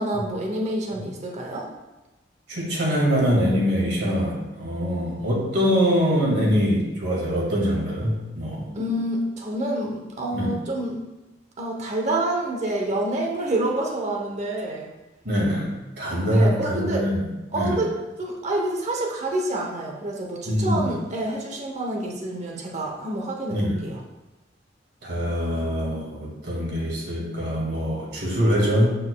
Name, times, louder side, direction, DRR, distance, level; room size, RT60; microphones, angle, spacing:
voice 1, 0.0-1.7 8.8-11.0 11.6-14.9 16.3-17.0 17.5-24.0, right 1 dB, 40° right, 0 dB, 0.8 m, -27 dB
voice 2, 2.5-8.7 10.3-10.5 15.2-17.2 17.5-17.8 20.5-20.9 23.5-23.8 25.0-28.9, equal, 65° right, -3 dB, 2.0 m, -23 dB
7.6 x 6.4 x 2.3 m, 1.0 s
head